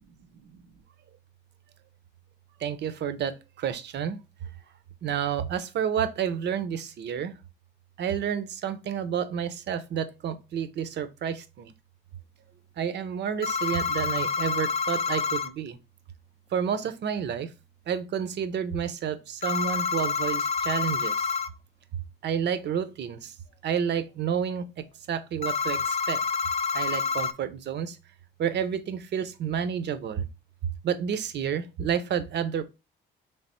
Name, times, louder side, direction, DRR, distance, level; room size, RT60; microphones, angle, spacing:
voice 1, 2.6-3.3 3.6-4.2 5.0-7.3 8.0-11.7 12.8-15.7 16.5-17.5 17.9-21.1 22.2-23.2 23.6-24.7 25.1-25.8 26.1-26.2 26.7-27.9 28.4-30.2 30.8-32.6, right 8 dB, 60° right, 0.6 m, -30 dB
sound 1, 13.4-15.5 19.4-21.5 25.4-27.3, left 5 dB, 35° left, 0.4 m, -28 dB
3.4 x 3.3 x 4.2 m
cardioid pair, 90°, 20 cm